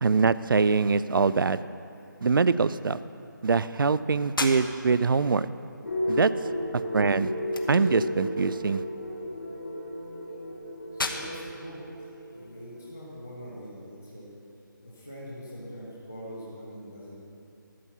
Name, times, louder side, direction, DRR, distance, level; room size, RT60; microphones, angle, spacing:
voice 1, 0.0-1.6 2.2-3.0 3.4-5.5 6.1-6.3 6.7-7.3 7.7-8.8, right 4 dB, 80° right, 15 dB, 0.4 m, -23 dB
sound 1, 4.3-13.2, left 3 dB, 80° left, 1.1 m, -40 dB
sound 2, 5.8-13.1, left 1 dB, 55° left, 1.6 m, -34 dB
voice 2, 10.9-11.8 12.3-14.3 14.8-17.2, equal, 5° left, -8 dB, 0.3 m, -42 dB
12.5 x 5.6 x 8.1 m, 2.6 s
figure-of-eight pair, 175°, 11 cm